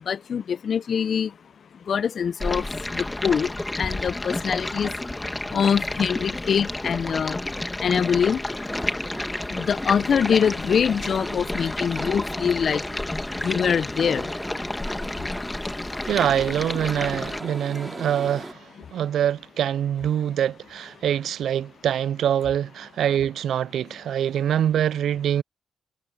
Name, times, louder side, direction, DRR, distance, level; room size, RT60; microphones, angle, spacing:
voice 1, 0.1-1.3 1.9-2.6 2.9-4.9 5.5-7.4 7.8-8.4 9.5-12.8 13.4-14.3, left 7 dB, 60° left, 0.6 m, -24 dB
Stream, 2.4-17.4, left 2 dB, 20° left, 2.3 m, -31 dB
sound 1, 8.1-18.5, equal, 5° right, 3.1 m, -38 dB
voice 2, 16.1-18.6 18.9-25.4, right 10 dB, 75° right, 0.4 m, -24 dB
supercardioid pair, 45°, 0 cm